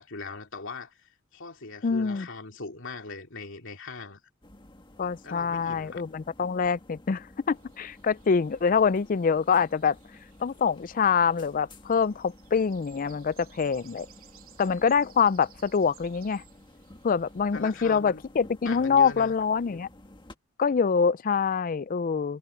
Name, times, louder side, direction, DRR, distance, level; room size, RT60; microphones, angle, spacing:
voice 1, 0.0-4.2 5.2-6.0 17.5-18.2 18.6-19.3, left 3 dB, 60° left, 2.8 m, -40 dB
voice 2, 1.8-2.3 5.0-10.0 10.4-14.1 14.6-16.4 17.0-19.9 20.6-22.4, left 6 dB, 40° left, 0.4 m, -25 dB
sound 1, 4.4-20.4, left 1 dB, 20° left, 1.8 m, -53 dB
sound 2, 7.5-18.1, right 9 dB, 70° right, 3.3 m, -58 dB
head